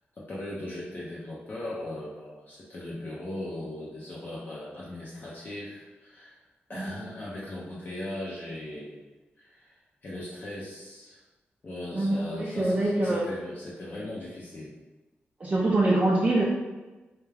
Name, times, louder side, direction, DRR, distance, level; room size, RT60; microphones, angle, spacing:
voice 1, 0.2-6.4 6.7-9.1 9.4-9.7 10.0-11.2 11.6-14.7, left 1 dB, 45° left, -7 dB, 0.5 m, -38 dB
voice 2, 11.9-13.3 15.4-16.4, right 2 dB, 30° right, -4 dB, 0.4 m, -24 dB
2.3 x 2.2 x 3.2 m, 1.2 s
cardioid pair, 80°, 4 cm